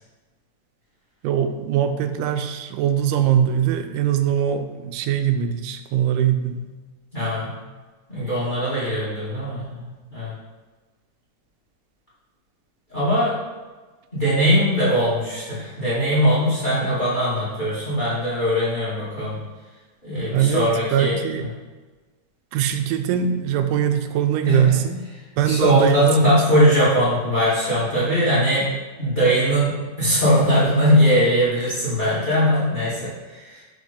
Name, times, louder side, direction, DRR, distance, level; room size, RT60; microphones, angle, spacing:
voice 1, 1.2-6.7 20.3-21.5 22.5-25.0 25.4-26.4, right 9 dB, 90° right, 8 dB, 2.1 m, -22 dB
voice 2, 7.1-7.5 8.1-10.3 12.9-13.3 14.1-19.4 20.0-21.1 24.4-24.7 25.4-28.7 29.0-33.6, equal, 20° left, -9 dB, 1.6 m, -20 dB
5.5 x 3.8 x 5.0 m, 1.3 s
omnidirectional pair, 3.6 m